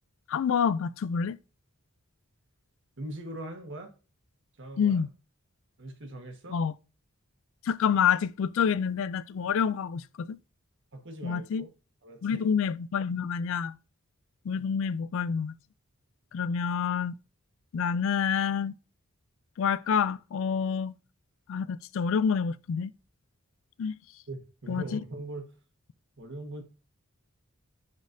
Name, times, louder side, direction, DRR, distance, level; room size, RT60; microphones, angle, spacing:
voice 1, 0.3-1.4 4.8-5.1 6.5-6.7 7.7-10.4 11.2-11.6 12.2-13.7 14.5-15.5 16.3-17.1 17.7-18.7 19.6-20.9 21.5-22.9 23.8-23.9 24.7-25.0, left 7 dB, 60° left, 0.3 m, -27 dB
voice 2, 3.0-3.9 4.6-5.0 5.8-6.6 10.9-11.7 12.0-12.5 24.3-25.5 26.2-26.6, right 1 dB, 55° right, 1.4 m, -41 dB
9.7 x 4.1 x 2.6 m
head